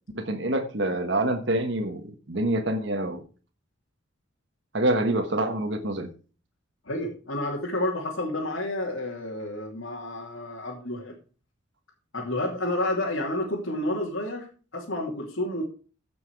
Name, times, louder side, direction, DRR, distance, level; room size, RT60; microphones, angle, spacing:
voice 1, 0.1-3.2 4.7-6.1, right 1 dB, 60° right, 5 dB, 1.4 m, -26 dB
voice 2, 6.9-11.1 12.1-14.5 14.7-15.6, left 1 dB, 75° left, -4 dB, 2.8 m, -30 dB
15.5 x 6.1 x 4.7 m, 0.37 s
head